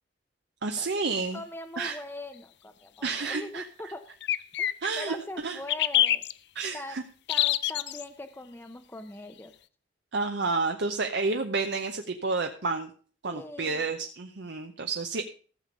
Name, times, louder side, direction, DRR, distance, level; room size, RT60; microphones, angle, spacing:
voice 1, 0.6-1.4 1.8-2.0 3.0-3.6 4.8-5.2 5.4-5.6 6.5-7.0 10.1-12.9 13.2-15.2, right 3 dB, 70° right, 5 dB, 0.8 m, -30 dB
sound 1, 1.2-1.3 4.2-5.1 5.7-6.3 7.3-8.0, left 13 dB, 65° left, 0.5 m, -25 dB
voice 2, 1.3-4.0 4.6-4.7 5.0-6.2 6.7-7.0 7.3-9.5 13.3-13.9, left 1 dB, 15° left, 7 dB, 0.6 m, -41 dB
14.5 x 7.0 x 5.1 m, 0.41 s
head